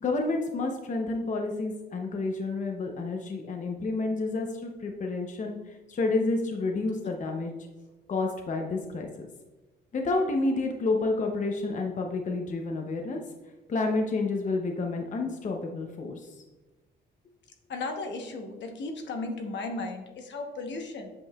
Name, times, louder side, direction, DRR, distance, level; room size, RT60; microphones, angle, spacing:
voice 1, 0.0-7.5 8.1-9.3 9.9-13.2 13.7-16.4, left 3 dB, 40° left, 3 dB, 0.7 m, -29 dB
voice 2, 17.7-21.1, left 3 dB, 65° left, 4 dB, 1.0 m, -35 dB
8.0 x 5.4 x 2.3 m, 1.2 s
cardioid pair, 90°, 20 cm